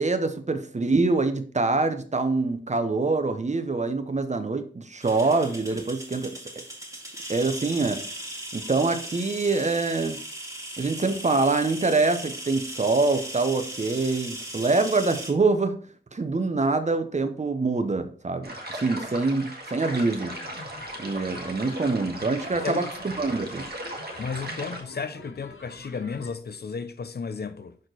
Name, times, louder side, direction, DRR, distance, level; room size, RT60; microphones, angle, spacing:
voice 1, 0.0-6.4 7.3-8.1 8.5-10.2 10.8-15.8 16.1-20.3 21.0-22.8 23.2-23.7, right 3 dB, 35° right, 0.7 m, -25 dB
sound 1, 5.0-15.3, right 1 dB, 15° right, 2.2 m, -38 dB
sound 2, 18.4-24.8, right 1 dB, 50° right, 1.4 m, -37 dB
sound 3, 20.3-26.3, left 3 dB, 75° left, 1.1 m, -45 dB
voice 2, 24.2-27.8, left 5 dB, 50° left, 0.5 m, -33 dB
6.3 x 4.3 x 3.9 m
wide cardioid pair, 100°, 21 cm